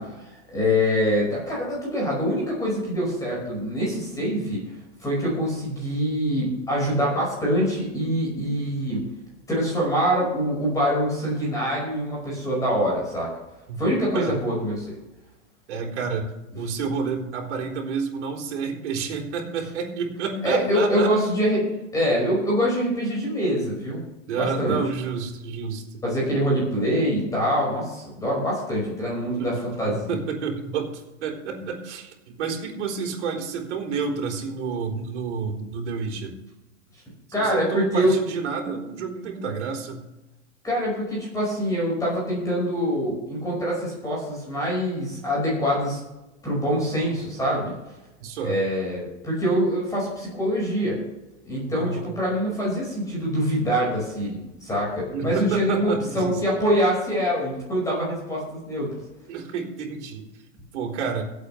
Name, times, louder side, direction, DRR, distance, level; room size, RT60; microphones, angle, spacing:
voice 1, 0.0-4.6 5.0-9.0 9.5-13.3 13.8-15.0 20.4-21.7 21.9-24.0 24.4-24.8 26.0-30.2 37.3-38.1 40.6-46.0 46.4-47.7 48.4-51.0 51.5-59.0, equal, 10° left, -5 dB, 5.4 m, -24 dB
voice 2, 15.7-16.3 16.5-21.1 24.3-26.0 29.4-29.5 29.9-36.4 37.4-40.0 48.2-48.6 51.7-52.0 55.1-56.4 59.3-60.3 60.7-61.2, right 5 dB, 65° right, 1 dB, 4.0 m, -29 dB
25.0 x 8.4 x 3.4 m, 1.0 s
supercardioid pair, 165°, 37 cm